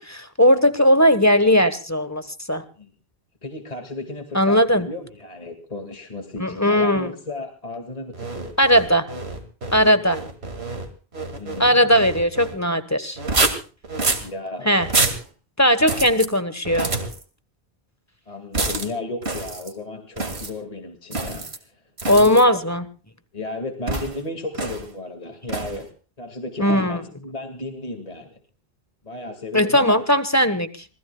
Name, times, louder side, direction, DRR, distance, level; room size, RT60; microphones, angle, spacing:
voice 1, 0.0-2.6 4.3-4.9 6.4-7.1 8.6-9.1 9.7-10.2 11.6-13.2 14.6-14.9 15.6-16.9 22.1-22.9 26.6-27.0 29.5-30.9, equal, 15° left, 11 dB, 1.2 m, -18 dB
voice 2, 3.4-8.5 11.4-11.9 14.2-14.7 18.3-22.6 23.3-25.9 26.2-28.4 29.0-30.0, left 2 dB, 35° left, 5 dB, 2.2 m, -34 dB
sound 1, 8.1-12.6 13.2-14.3 14.8-15.2 15.8-16.3 16.6-17.2 18.5-18.9 19.2-19.7 20.2-20.5 21.1-21.6 22.0-22.4 23.9-24.2 24.5-24.9 25.5-25.8, right 3 dB, 75° right, 2.5 m, -27 dB
26.5 x 19.5 x 2.3 m, 0.36 s
omnidirectional pair, 1.1 m